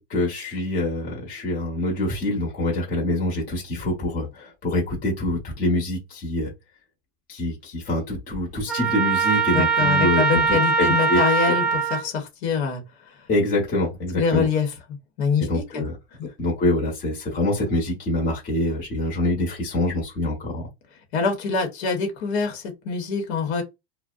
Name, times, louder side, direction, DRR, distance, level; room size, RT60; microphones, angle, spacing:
voice 1, 0.1-6.5 7.3-11.5 13.3-14.5 15.5-16.0 16.4-20.6, left 1 dB, 25° left, 0.9 m, -25 dB
Trumpet, 8.7-12.1, right 5 dB, ahead, 0.3 m, -21 dB
voice 2, 9.5-12.8 14.2-14.7 15.2-15.8 16.2-16.3 21.1-23.6, left 5 dB, 75° left, 1.0 m, -24 dB
2.5 x 2.1 x 2.3 m
supercardioid pair, 140°, 32 cm